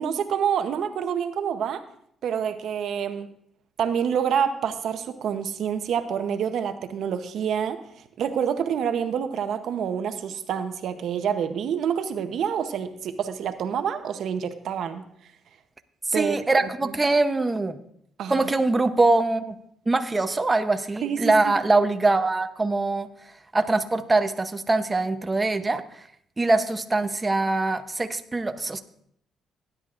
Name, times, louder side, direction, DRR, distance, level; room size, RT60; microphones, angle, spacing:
voice 1, 0.0-1.8 2.2-3.3 3.8-7.8 8.2-15.0 16.1-16.4 16.6-16.9 18.2-18.5 21.0-21.5, right 8 dB, 70° right, 9 dB, 0.8 m, -27 dB
voice 2, 16.1-17.8 18.3-19.5 19.9-23.1 23.5-25.8 26.4-28.8, right 2 dB, 20° right, 7 dB, 0.7 m, -23 dB
17.0 x 10.0 x 2.5 m, 0.71 s
cardioid pair, 90°, 0 cm